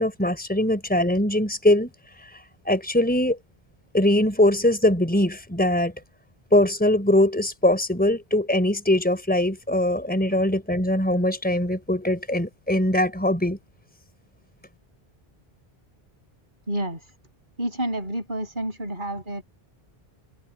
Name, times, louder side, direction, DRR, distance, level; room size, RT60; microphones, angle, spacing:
voice 1, 0.0-1.9 2.6-3.4 3.9-5.9 6.5-13.6, left 1 dB, 10° left, 4.2 m, -21 dB
voice 2, 16.7-17.0 17.6-19.4, right 1 dB, 55° right, 8.1 m, -29 dB
omnidirectional pair, 1.0 m